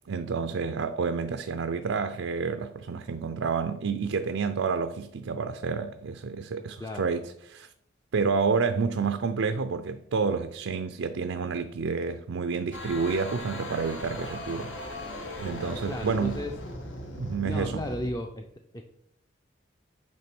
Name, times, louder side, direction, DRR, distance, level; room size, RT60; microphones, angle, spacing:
voice 1, 0.1-7.7 8.1-15.1 15.4-16.4 17.2-17.8, right 5 dB, 90° right, 0.5 m, -29 dB
voice 2, 6.8-7.1 15.9-16.5 17.4-18.5 18.7-18.8, left 1 dB, 20° left, 0.5 m, -34 dB
sound 1, 12.7-18.1, left 1 dB, 80° left, 1.4 m, -38 dB
8.7 x 3.7 x 6.0 m
head